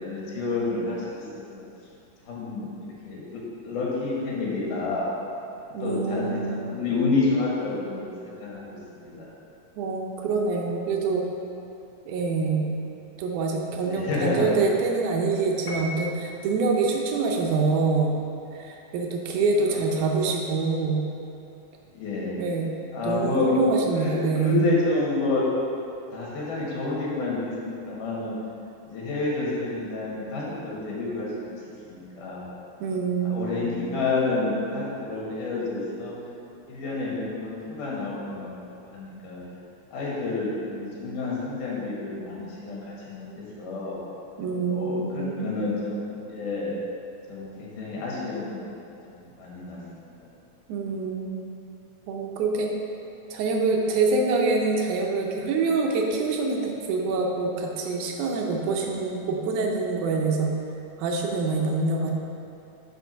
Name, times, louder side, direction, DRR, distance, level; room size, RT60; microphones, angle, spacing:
voice 1, 0.0-1.6 2.3-5.1 5.8-9.3 13.8-14.5 19.7-19.8 21.9-22.3 22.9-23.5 24.0-25.4 26.1-28.4 28.9-31.5 31.9-32.4 33.3-36.1 36.7-38.6 38.8-39.4 39.9-44.0 44.7-46.7 47.3-48.8 49.1-50.1 58.6-58.8, left 3 dB, 85° left, -5 dB, 3.0 m, -29 dB
voice 2, 5.7-6.8 9.8-11.3 12.1-12.7 13.2-18.2 18.6-21.1 22.4-22.7 23.0-24.7 32.8-33.7 44.4-45.5 50.7-51.5 52.1-52.7 53.3-60.5 61.0-62.1, right 3 dB, 80° right, 0 dB, 2.1 m, -25 dB
Piano, 15.7-16.6, equal, 65° left, 1.5 m, -36 dB
7.0 x 4.5 x 5.5 m, 2.7 s
omnidirectional pair, 3.5 m